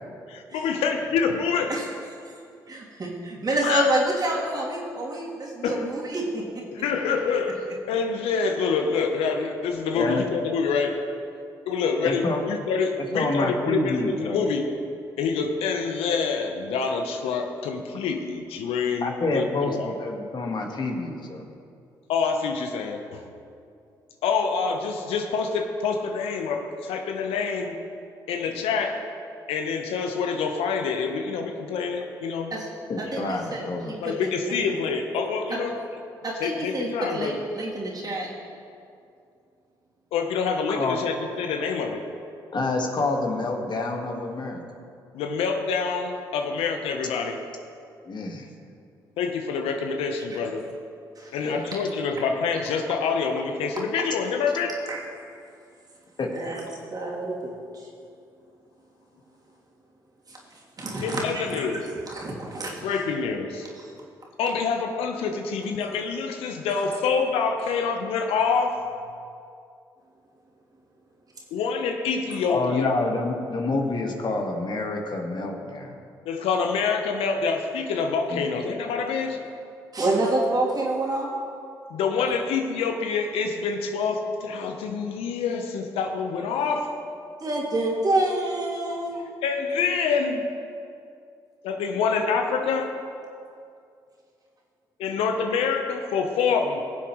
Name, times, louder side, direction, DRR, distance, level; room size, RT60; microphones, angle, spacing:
voice 1, 0.3-1.8 3.6-3.9 5.6-5.9 6.7-11.0 11.7-14.7 15.2-19.9 22.1-23.3 24.2-27.7 28.3-29.0 29.5-32.5 34.0-35.7 36.4-37.4 40.1-42.1 45.1-47.4 49.2-50.7 51.3-54.8 61.0-61.9 62.8-63.7 64.4-68.9 71.5-72.9 76.3-79.4 81.9-87.0 89.4-90.4 91.6-92.9 95.0-96.8, left 5 dB, 75° left, 4 dB, 0.9 m, -26 dB
voice 2, 2.7-6.4 32.5-32.7 33.1-33.6 33.9-34.7 35.5-35.6 36.2-38.3 51.2-51.3 54.9-55.0 56.3-57.9 60.3-60.4 60.8-61.8 62.1-62.9 63.8-63.9 66.7-67.0 67.6-67.7 79.9-81.3 87.4-89.2 95.0-95.1, right 2 dB, 40° right, -4 dB, 2.8 m, -28 dB
voice 3, 9.9-10.2 12.0-12.4 13.0-14.5 19.0-21.5 32.9-33.9 40.7-41.0 42.5-44.6 48.0-48.5 51.4-51.6 56.2-56.3 72.5-76.0 78.3-78.4, left 2 dB, 45° left, 2 dB, 1.6 m, -28 dB
21.0 x 7.3 x 3.1 m, 2.4 s
hypercardioid pair, 50°, 10 cm